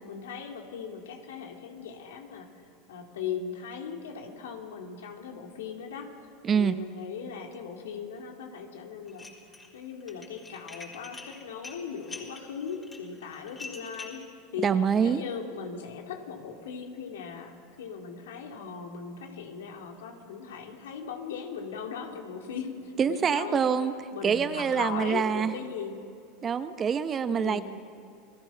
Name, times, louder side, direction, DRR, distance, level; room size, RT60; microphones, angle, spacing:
voice 1, 0.1-6.1 6.5-9.3 9.7-14.2 14.5-14.7 15.0-23.6 24.1-26.0 27.3-27.6, left 6 dB, 80° left, 3 dB, 2.7 m, -39 dB
voice 2, 6.4-6.8 14.6-15.2 23.0-24.0 24.2-25.5 26.4-27.6, right 7 dB, 30° right, 11 dB, 1.1 m, -25 dB
Dishes pots and pans, 9.1-9.7 10.0-14.2, left 3 dB, 20° left, 3.9 m, -44 dB
29.0 x 19.5 x 5.9 m, 2.5 s
hypercardioid pair, 90°, 0 cm